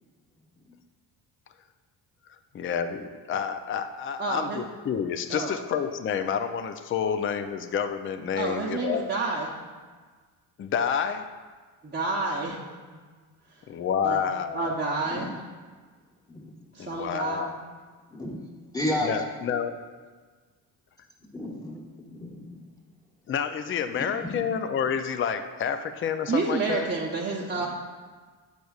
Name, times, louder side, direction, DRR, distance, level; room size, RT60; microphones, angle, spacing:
voice 1, 2.5-9.1 10.6-11.2 13.7-14.7 16.8-17.5 19.0-19.7 23.3-26.9, left 7 dB, 30° left, 9 dB, 0.4 m, -29 dB
voice 2, 4.2-4.6 5.3-5.6 8.4-9.5 11.8-12.6 12.9-13.0 14.0-14.2 14.5-15.3 16.7-17.6 26.3-27.7, right 3 dB, 20° right, -5 dB, 0.8 m, -29 dB
voice 3, 15.0-15.3 16.3-16.6 18.1-18.4 18.7-19.2 21.2-22.6 23.9-24.4 27.5-27.7, left 1 dB, 10° left, -2 dB, 1.3 m, -33 dB
7.9 x 5.0 x 2.4 m, 1.5 s
supercardioid pair, 70°, 45 cm